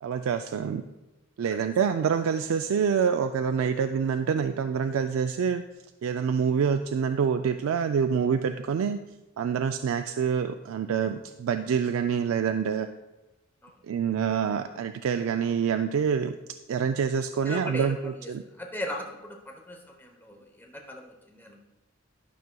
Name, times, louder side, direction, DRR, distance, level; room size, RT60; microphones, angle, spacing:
voice 1, 0.0-0.8 1.4-5.6 6.0-9.0 9.4-12.9 13.8-16.4 16.7-18.4, right 6 dB, 90° right, 7 dB, 0.3 m, -26 dB
voice 2, 17.5-18.3 18.6-21.6, left 1 dB, 10° left, 1 dB, 0.8 m, -39 dB
12.0 x 6.1 x 2.3 m, 0.99 s
head